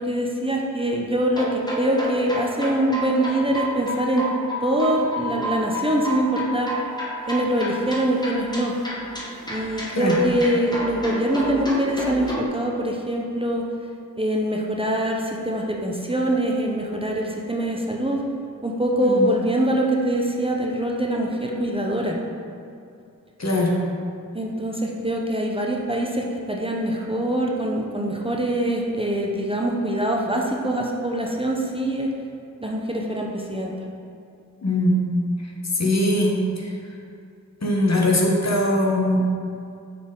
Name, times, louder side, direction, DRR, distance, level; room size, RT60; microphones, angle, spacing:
voice 1, 0.0-4.3 4.6-6.7 7.3-8.7 9.5-13.6 14.2-18.2 18.6-22.2 24.3-32.1 32.6-33.7, right 1 dB, 15° right, -1 dB, 0.7 m, -24 dB
sound 1, 1.3-12.5, right 1 dB, 10° left, 1.2 m, -31 dB
voice 2, 19.0-19.3 23.4-23.8 34.6-35.1 35.7-36.7 37.6-39.2, left 1 dB, 50° left, -1 dB, 1.0 m, -21 dB
6.0 x 4.2 x 3.7 m, 2.4 s
cardioid pair, 40°, 33 cm